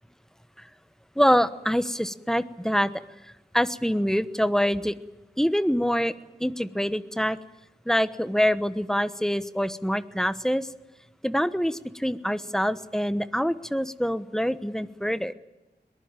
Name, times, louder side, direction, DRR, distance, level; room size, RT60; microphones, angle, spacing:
voice 1, 1.1-2.9 3.5-4.9 5.4-6.1 6.4-7.4 7.8-10.7 11.2-15.3, equal, 5° left, 14 dB, 1.1 m, -25 dB
22.0 x 20.0 x 9.0 m, 1.0 s
wide cardioid pair, 65°, 18 cm